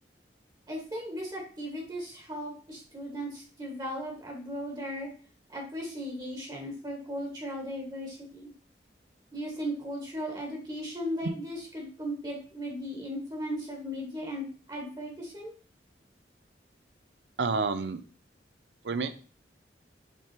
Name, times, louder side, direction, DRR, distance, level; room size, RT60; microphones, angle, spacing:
voice 1, 0.7-5.1 5.5-8.5 9.3-15.5, equal, 25° right, 0 dB, 1.4 m, -37 dB
voice 2, 17.4-18.0 18.9-19.1, right 4 dB, 80° right, 11 dB, 0.6 m, -28 dB
6.0 x 3.5 x 4.4 m, 0.40 s
head